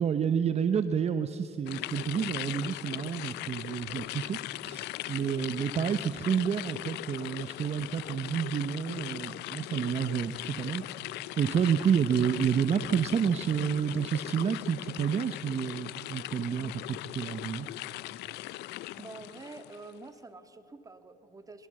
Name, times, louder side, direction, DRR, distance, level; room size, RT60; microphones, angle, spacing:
voice 1, 0.0-11.1 11.4-17.7, right 7 dB, 40° right, 11 dB, 0.8 m, -29 dB
sound 1, 1.7-19.9, left 17 dB, 80° left, 0.5 m, -39 dB
voice 2, 19.0-21.7, right 3 dB, 20° right, 9 dB, 1.6 m, -47 dB
22.0 x 22.0 x 7.7 m, 2.9 s
cardioid pair, 110°, 17 cm